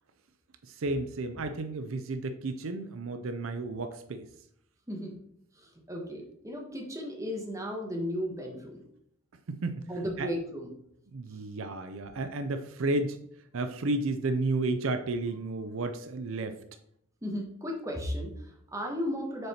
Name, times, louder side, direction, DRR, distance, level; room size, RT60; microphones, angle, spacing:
voice 1, 0.7-4.3 9.5-9.8 10.2-10.3 11.1-13.2 13.5-16.6, right 2 dB, 70° right, 9 dB, 0.5 m, -32 dB
voice 2, 5.5-8.8 9.9-10.7 11.3-11.4 17.2-19.5, equal, 15° right, 0 dB, 1.1 m, -35 dB
6.5 x 4.2 x 4.2 m, 0.71 s
head